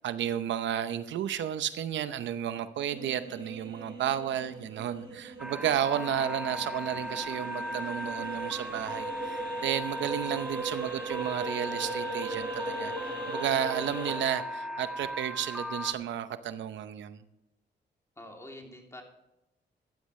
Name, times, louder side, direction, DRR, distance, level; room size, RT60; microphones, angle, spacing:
voice 1, 0.0-17.2, right 10 dB, 85° right, 12 dB, 0.8 m, -32 dB
sound 1, 2.9-14.2, right 3 dB, 25° right, 4.7 m, -39 dB
sound 2, 5.4-15.9, equal, 5° right, 1.3 m, -37 dB
voice 2, 18.2-19.0, left 1 dB, 15° left, 1 dB, 2.9 m, -46 dB
15.0 x 11.5 x 3.2 m, 0.88 s
cardioid pair, 95°, 19 cm